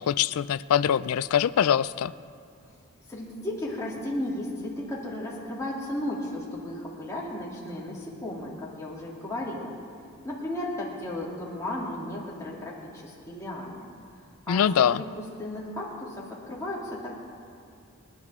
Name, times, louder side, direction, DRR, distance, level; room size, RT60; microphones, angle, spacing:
voice 1, 0.0-2.1 14.5-15.0, left 9 dB, 75° left, 17 dB, 0.3 m, -23 dB
voice 2, 3.1-9.7 10.2-13.8 14.5-14.8 15.2-17.1, left 1 dB, 15° left, -6 dB, 2.9 m, -34 dB
30.0 x 10.0 x 3.7 m, 2.5 s
head